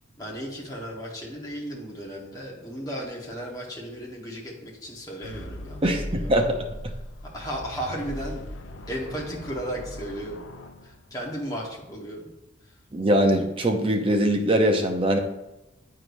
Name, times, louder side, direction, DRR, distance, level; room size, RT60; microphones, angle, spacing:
voice 1, 0.2-6.5 7.3-8.4 8.9-10.5 10.8-12.3 12.6-12.7, equal, 20° left, -3 dB, 1.2 m, -35 dB
sound 1, 5.2-11.4, left 1 dB, 80° left, 0.6 m, -39 dB
voice 2, 5.8-6.6 12.9-15.2, right 1 dB, 30° right, 4 dB, 0.7 m, -22 dB
8.7 x 4.7 x 2.6 m, 0.97 s
head